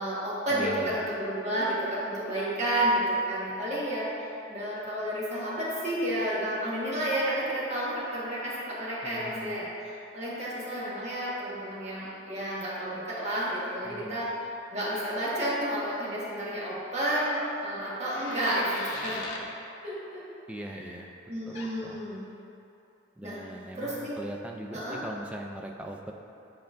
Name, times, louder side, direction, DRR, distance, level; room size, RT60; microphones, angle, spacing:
voice 1, 0.0-14.3 14.7-19.2 19.8-20.2 20.7-20.9 21.3-22.2 23.2-23.4 23.7-24.1 24.7-25.0, right 1 dB, 35° right, -8 dB, 1.5 m, -31 dB
voice 2, 0.5-1.1 9.0-9.6 13.8-14.2 20.5-21.1 21.5-22.1 23.2-26.1, right 1 dB, 5° right, 1 dB, 0.3 m, -40 dB
sound 1, 16.9-19.5 21.5-21.8, left 2 dB, 80° left, 0.7 m, -40 dB
9.2 x 4.5 x 2.6 m, 2.8 s
head